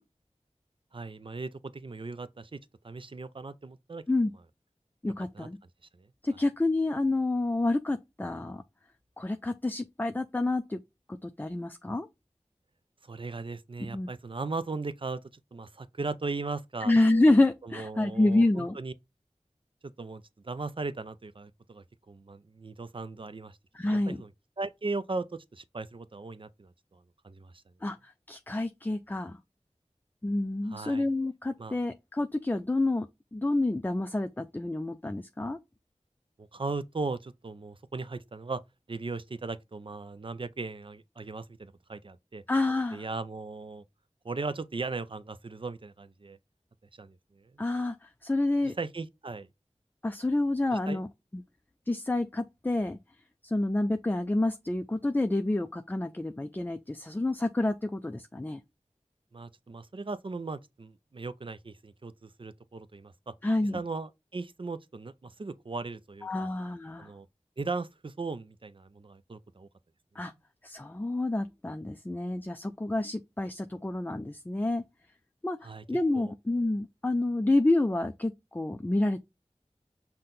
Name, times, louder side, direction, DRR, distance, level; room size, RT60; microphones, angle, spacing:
voice 1, 0.9-2.6 2.8-4.0 5.3-5.5 6.0-6.1 13.1-15.2 15.5-16.9 17.6-18.9 20.0-23.6 23.8-24.3 24.6-27.5 30.7-31.1 31.6-31.8 36.4-38.6 38.9-42.4 42.9-43.8 44.2-46.4 47.0-47.5 48.6-49.5 50.7-51.0 59.3-63.3 63.7-66.5 67.0-67.3 67.6-69.7 75.6-75.8 76.1-76.3, right 3 dB, 45° right, 0.4 m, -38 dB
voice 2, 5.0-5.6 6.2-8.6 9.2-10.8 11.1-12.1 13.9-14.1 16.8-18.8 23.7-24.2 27.8-29.4 30.2-33.1 33.3-35.6 42.5-43.0 47.6-48.7 50.0-51.1 51.3-51.4 51.9-53.0 53.4-58.6 63.4-63.8 66.2-67.1 70.2-70.3 70.6-74.8 75.4-75.6 75.9-79.2, left 2 dB, 15° left, 0.4 m, -28 dB
5.7 x 2.2 x 3.8 m
wide cardioid pair, 40°, 12 cm